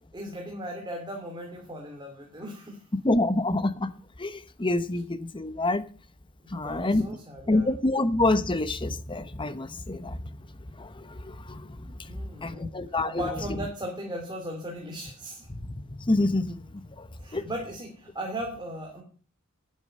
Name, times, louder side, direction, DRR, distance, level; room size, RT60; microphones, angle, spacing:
voice 1, 0.1-2.8 6.4-7.7 12.1-12.7 13.1-15.5 17.2-19.0, equal, 20° right, 2.8 m, -37 dB
voice 2, 3.0-3.9 4.2-5.8 6.5-7.1 7.5-10.2 10.8-11.8 12.4-13.2 16.0-16.6 17.0-17.1 17.3-17.4, left 2 dB, 25° left, 0.9 m, -27 dB
11.0 x 9.2 x 6.5 m
head